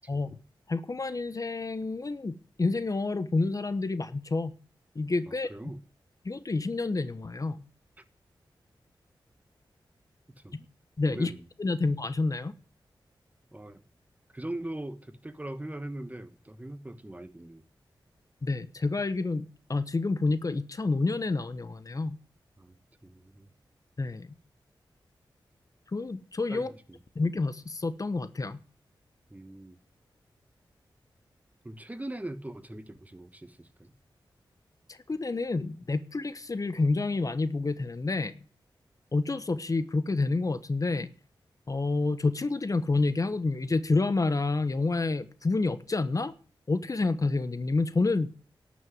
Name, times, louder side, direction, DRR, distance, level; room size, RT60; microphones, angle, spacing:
voice 1, 0.7-4.5 4.9-5.5 6.2-7.6 11.0-11.3 11.6-12.5 18.4-19.4 19.7-22.2 24.0-24.3 25.9-26.7 27.1-28.6 34.9-38.3 39.1-41.1 41.7-46.3 46.7-48.3, left 3 dB, 40° left, 1.0 m, -28 dB
voice 2, 5.3-5.8 10.4-10.5 11.1-11.5 13.5-13.8 14.3-17.6 22.6-22.7 23.0-23.5 26.5-27.0 29.3-29.8 31.6-33.9, right 1 dB, 15° right, 1.2 m, -41 dB
12.0 x 6.3 x 9.4 m
cardioid pair, 60°, 9 cm